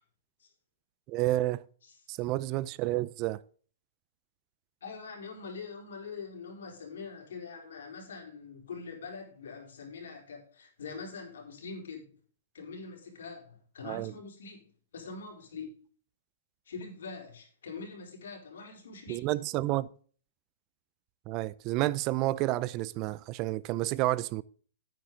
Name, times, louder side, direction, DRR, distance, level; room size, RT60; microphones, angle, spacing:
voice 1, 1.1-1.6 2.1-3.4 13.8-14.1 19.1-19.9 21.3-24.4, right 17 dB, 35° right, 0.4 m, -30 dB
voice 2, 4.8-12.1 12.5-15.7 16.7-19.3, left 4 dB, 80° left, 4.6 m, -44 dB
9.3 x 9.1 x 3.7 m
hypercardioid pair, 145°, 0 cm